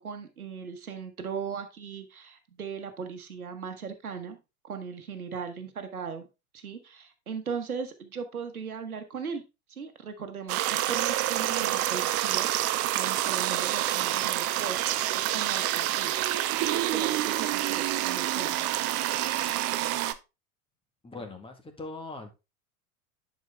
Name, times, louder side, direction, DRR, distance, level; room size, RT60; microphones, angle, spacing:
voice 1, 0.0-4.4 4.6-6.3 6.5-9.4 9.7-12.5 12.9-16.1 16.7-18.7, right 6 dB, 85° right, 6 dB, 1.3 m, -38 dB
sound 1, 10.5-20.1, right 14 dB, 35° right, 0.7 m, -27 dB
voice 2, 21.0-22.3, left 3 dB, 10° left, 5 dB, 1.9 m, -41 dB
10.5 x 4.7 x 3.4 m, 0.26 s
figure-of-eight pair, 85°, 43 cm